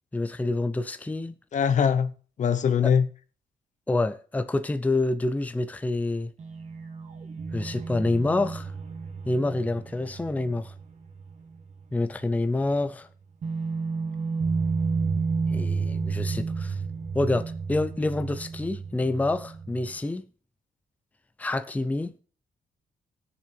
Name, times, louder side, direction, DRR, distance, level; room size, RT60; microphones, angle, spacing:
voice 1, 0.1-1.3 2.8-2.9 3.9-6.3 7.5-8.7 9.3-10.7 11.9-13.1 15.5-16.8 17.1-20.3 21.4-22.1, left 2 dB, 10° left, 0.6 m, -27 dB
voice 2, 1.5-3.1, left 7 dB, 55° left, 0.9 m, -22 dB
sound 1, 6.4-11.8 12.1-12.2 13.4-20.0, right 4 dB, 50° right, 1.9 m, -31 dB
19.0 x 6.9 x 3.3 m
cardioid pair, 120°, 15 cm